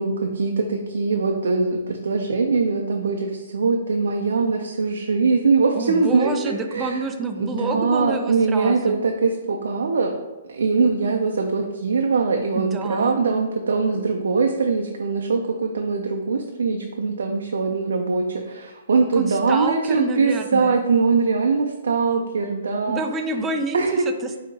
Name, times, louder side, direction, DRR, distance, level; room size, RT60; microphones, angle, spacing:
voice 1, 0.0-7.0 7.4-10.1 10.5-23.0 23.7-24.0, right 4 dB, 85° right, 2 dB, 0.4 m, -22 dB
voice 2, 5.7-9.0 12.5-13.2 19.1-20.8 22.9-24.4, right 3 dB, 15° right, 6 dB, 0.3 m, -28 dB
5.2 x 2.8 x 2.7 m, 1.1 s
hypercardioid pair, 155°, 0 cm